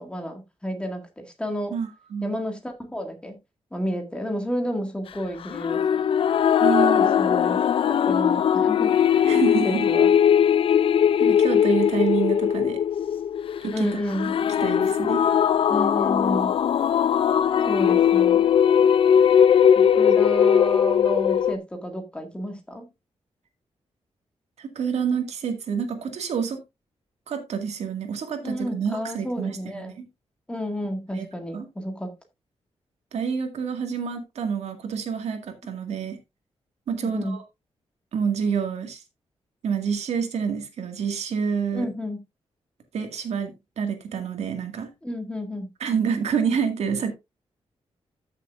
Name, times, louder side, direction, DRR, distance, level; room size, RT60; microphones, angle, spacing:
voice 1, 0.0-1.7 2.2-3.4 3.7-6.0 7.0-7.6 7.9-9.3 9.6-10.1 13.7-14.3 15.7-16.5 17.7-18.4 19.7-22.9 28.4-29.9 30.5-32.1 36.9-37.4 41.7-42.2 45.0-45.7, equal, 10° left, 1.9 m, -31 dB
voice 2, 1.7-2.4 6.6-7.2 9.2-9.9 11.2-12.8 13.6-14.0 14.6-15.3 24.6-26.6 27.3-30.1 31.1-31.3 31.5-31.7 33.1-36.2 36.9-37.4 38.1-39.0 39.6-41.9 42.9-44.9 45.8-47.1, right 6 dB, 80° right, 2.0 m, -28 dB
sound 1, 5.5-21.5, left 8 dB, 55° left, 0.4 m, -20 dB
13.5 x 6.6 x 2.5 m
wide cardioid pair, 165°, 11 cm